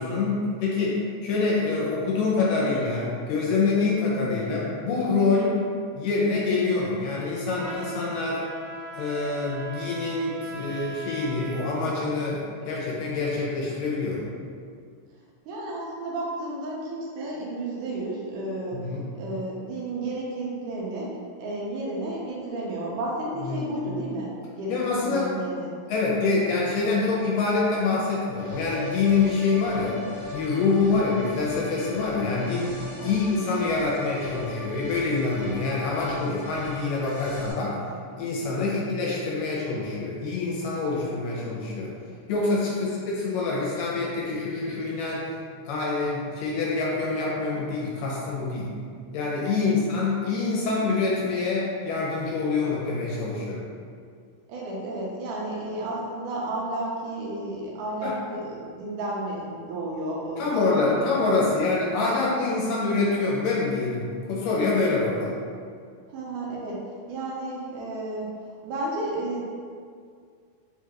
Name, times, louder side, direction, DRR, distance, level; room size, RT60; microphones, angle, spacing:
voice 1, 0.0-5.6 5.9-8.4 8.9-14.3 18.7-19.1 23.5-23.7 24.7-25.3 25.9-30.0 30.3-32.8 33.0-37.8 38.2-41.9 42.3-45.3 45.6-48.7 49.1-53.6 58.0-58.2 60.4-65.4, left 3 dB, 90° left, -5 dB, 2.5 m, -26 dB
voice 2, 4.1-4.5 15.5-18.9 19.1-24.8 25.1-25.7 30.9-31.1 33.0-33.3 38.6-38.9 42.7-43.0 49.5-49.8 54.5-61.6 66.1-68.3 68.6-69.4, right 2 dB, 80° right, -4 dB, 2.1 m, -32 dB
Trumpet, 7.5-11.7, right 1 dB, 50° right, 1.2 m, -39 dB
sound 1, 28.3-37.5, left 1 dB, 65° left, 1.5 m, -39 dB
5.5 x 2.5 x 2.9 m, 2.2 s
omnidirectional pair, 3.8 m